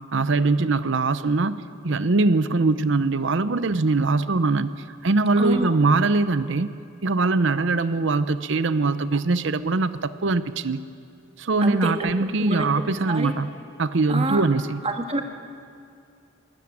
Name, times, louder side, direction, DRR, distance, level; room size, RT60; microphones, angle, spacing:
voice 1, 0.1-1.6 1.8-4.7 5.0-6.7 7.0-10.8 11.4-13.5 13.8-14.8, right 3 dB, 65° right, 13 dB, 0.7 m, -22 dB
voice 2, 5.4-5.7 11.6-12.1 12.4-12.7 13.1-13.3 14.1-14.5 14.8-15.2, right 2 dB, 30° right, 4 dB, 1.5 m, -26 dB
20.5 x 13.0 x 9.7 m, 2.4 s
head